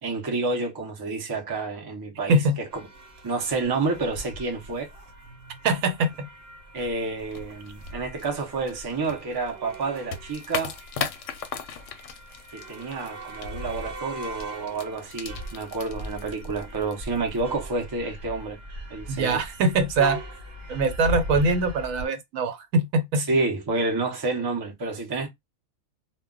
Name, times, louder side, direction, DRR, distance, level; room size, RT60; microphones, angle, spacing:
voice 1, 0.0-2.8 3.2-4.9 6.7-10.8 12.5-18.6 18.9-19.4 23.2-25.3, right 3 dB, 35° right, 0.3 m, -29 dB
sound 1, 2.7-22.1, right 1 dB, 55° right, 0.9 m, -40 dB
voice 2, 5.6-6.3 19.1-20.2 20.7-23.3, right 2 dB, 80° right, 1.1 m, -23 dB
sound 2, 7.3-17.5, left 7 dB, 70° left, 0.8 m, -39 dB
2.2 x 2.2 x 3.6 m
omnidirectional pair, 1.4 m